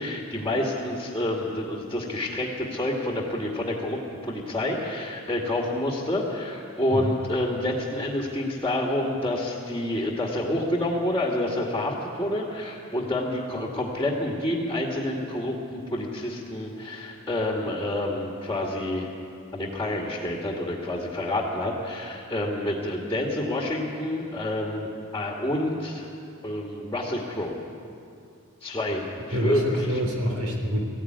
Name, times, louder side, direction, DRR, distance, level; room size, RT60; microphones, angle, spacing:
voice 1, 0.0-4.0 4.3-19.1 19.5-26.1 26.4-27.6 28.6-30.0, left 1 dB, 10° left, -2 dB, 2.2 m, -28 dB
voice 2, 29.3-30.8, equal, 75° right, 1 dB, 3.7 m, -26 dB
21.0 x 15.0 x 9.7 m, 2.5 s
head